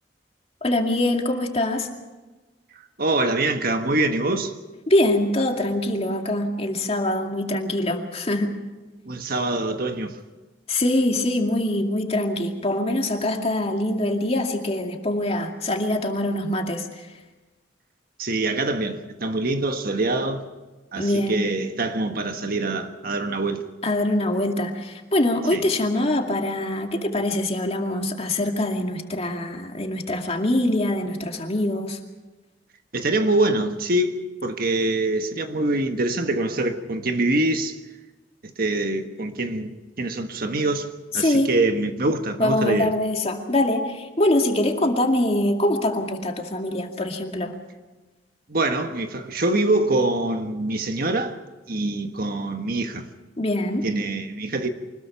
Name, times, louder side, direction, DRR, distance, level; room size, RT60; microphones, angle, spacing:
voice 1, 0.6-1.9 4.9-8.5 10.7-17.1 21.0-21.5 23.8-32.0 41.1-41.5 42.4-47.5 53.4-53.9, left 1 dB, 35° left, 2.3 m, -24 dB
voice 2, 3.0-4.5 9.0-10.1 18.2-20.4 20.9-23.6 25.5-25.7 32.9-37.8 38.4-40.9 41.1-42.9 48.5-51.4 51.7-53.1 53.8-54.7, right 2 dB, 55° right, 1.4 m, -24 dB
24.5 x 20.5 x 5.8 m
head